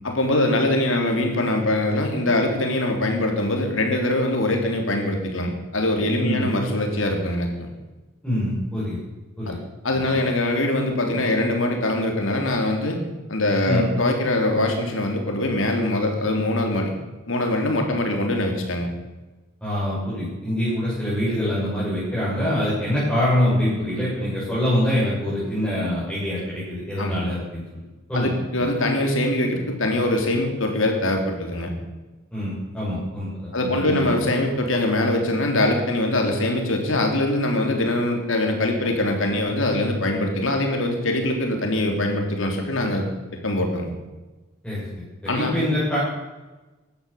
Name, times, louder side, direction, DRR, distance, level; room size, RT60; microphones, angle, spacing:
voice 1, 0.0-7.7 9.5-9.6 9.8-13.0 13.3-16.9 17.3-18.9 27.0-27.2 28.1-31.7 33.5-43.1 43.4-43.9 45.3-45.5, left 1 dB, 75° left, 3 dB, 3.5 m, -23 dB
voice 2, 6.2-6.5 8.2-9.0 9.4-9.6 13.6-13.9 19.6-27.8 28.1-28.3 28.6-28.7 32.3-34.1 44.6-46.0, left 1 dB, 5° left, -11 dB, 7.0 m, -25 dB
16.0 x 12.0 x 7.2 m, 1.2 s
head